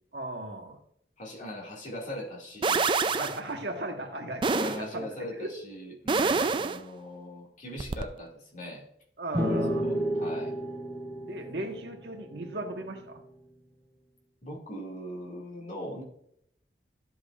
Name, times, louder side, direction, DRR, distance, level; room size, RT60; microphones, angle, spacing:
voice 1, 0.1-0.8 3.0-4.5 4.7-5.5 6.1-6.7 7.7-8.0 9.2-9.8 11.2-13.2, right 1 dB, 70° right, 3 dB, 1.4 m, -37 dB
voice 2, 1.2-2.9 4.5-8.8 9.5-10.5 14.4-16.0, equal, 45° left, -1 dB, 2.1 m, -40 dB
sound 1, 2.6-3.4 4.4-4.8 6.1-6.8 7.8-8.0, right 4 dB, 25° right, 0.4 m, -26 dB
sound 2, 9.3-12.9, equal, 5° left, 1.8 m, -31 dB
12.0 x 7.8 x 2.4 m, 0.72 s
head